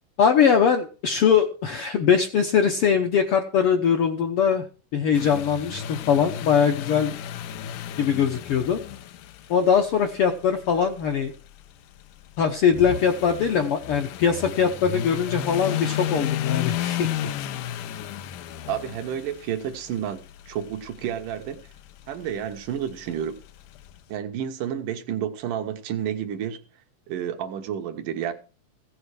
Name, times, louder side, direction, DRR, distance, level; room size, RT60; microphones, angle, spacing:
voice 1, 0.2-4.6 4.9-7.1 8.0-8.8 9.5-11.3 12.4-17.1, left 7 dB, 70° left, 1.4 m, -21 dB
sound 1, 5.1-24.0, left 11 dB, 85° left, 2.3 m, -34 dB
voice 2, 18.7-21.6 22.1-23.4 24.1-26.6 27.1-28.3, right 9 dB, 85° right, 2.8 m, -30 dB
16.0 x 7.9 x 4.8 m
omnidirectional pair, 3.7 m